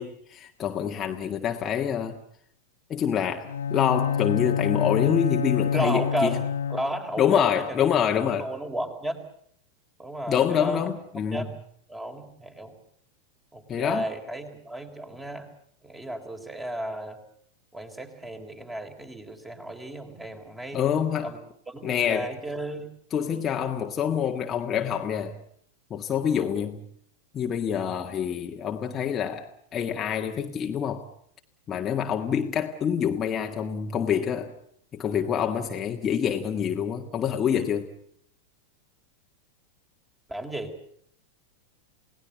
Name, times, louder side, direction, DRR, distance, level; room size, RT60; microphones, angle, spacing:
voice 1, 0.0-2.2 2.9-6.4 7.2-8.5 10.3-11.5 13.7-14.1 20.7-21.3 21.8-22.3 23.1-25.4 25.9-26.8 27.3-31.1 31.7-34.5 34.9-37.9, left 8 dB, 25° left, 3 dB, 1.7 m, -26 dB
Bowed string instrument, 3.4-7.2, left 7 dB, 65° left, 1.4 m, -27 dB
voice 2, 5.7-7.7 8.2-9.2 10.0-10.9 11.3-11.5 11.9-12.7 13.5-15.5 15.8-17.2 17.7-20.8 21.2-21.4 21.7-22.9 40.3-40.7, right 1 dB, 10° right, 5 dB, 4.0 m, -33 dB
29.5 x 18.5 x 8.1 m, 0.69 s
figure-of-eight pair, 90°, 0 cm